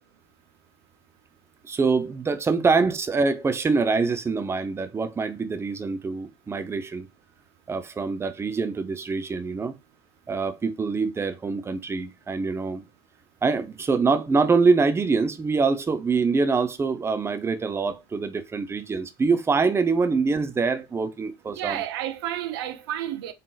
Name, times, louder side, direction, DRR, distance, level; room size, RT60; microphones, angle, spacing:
voice 1, 1.6-7.1 7.7-9.7 10.3-12.8 13.4-21.8, right 4 dB, 20° right, 0.7 m, -24 dB
voice 2, 21.5-23.3, right 12 dB, 80° right, 0.7 m, -31 dB
4.0 x 3.6 x 2.4 m
hypercardioid pair, 80°, 12 cm